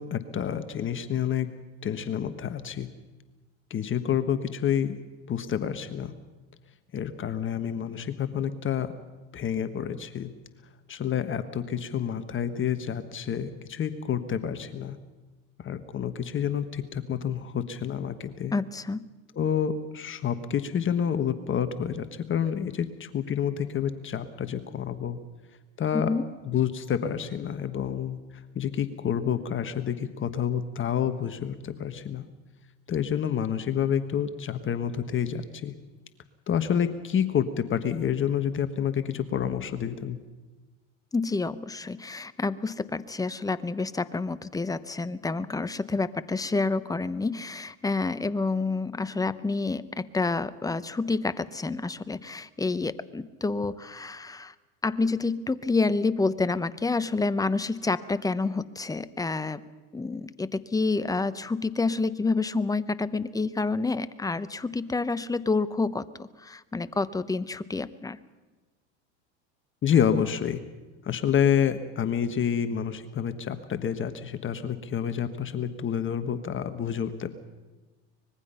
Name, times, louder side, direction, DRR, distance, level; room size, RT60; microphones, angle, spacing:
voice 1, 0.0-1.5 1.8-2.9 3.7-5.0 5.3-6.1 6.9-8.9 9.3-10.3 10.9-15.0 15.6-18.6 19.3-25.2 25.8-26.2 26.4-28.2 28.5-32.3 32.9-35.7 36.5-40.2 69.8-70.6 71.0-77.3, left 8 dB, 35° left, 10 dB, 1.3 m, -28 dB
voice 2, 18.5-19.1 25.9-26.3 41.1-54.5 54.8-59.6 59.9-68.2, left 3 dB, 10° left, 14 dB, 0.8 m, -28 dB
24.5 x 20.5 x 5.6 m, 1.2 s
supercardioid pair, 100°, 37 cm